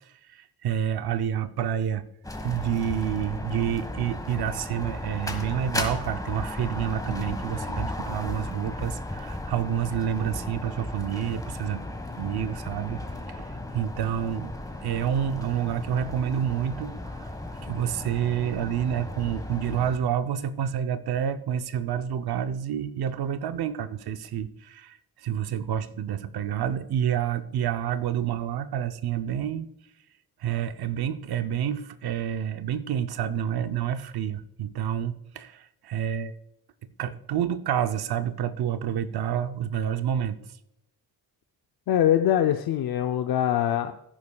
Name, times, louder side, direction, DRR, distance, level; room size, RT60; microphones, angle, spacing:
voice 1, 0.3-2.1 2.4-11.8 12.2-13.0 13.3-13.5 13.7-14.5 14.8-17.3 17.6-29.7 30.4-36.3 37.0-40.4, right 9 dB, 85° right, 11 dB, 0.7 m, -28 dB
sound 1, 2.2-20.0, left 1 dB, 10° left, 1.4 m, -35 dB
voice 2, 41.9-43.9, left 11 dB, 80° left, 7 dB, 0.6 m, -23 dB
16.5 x 9.6 x 2.3 m, 0.82 s
cardioid pair, 105°, 37 cm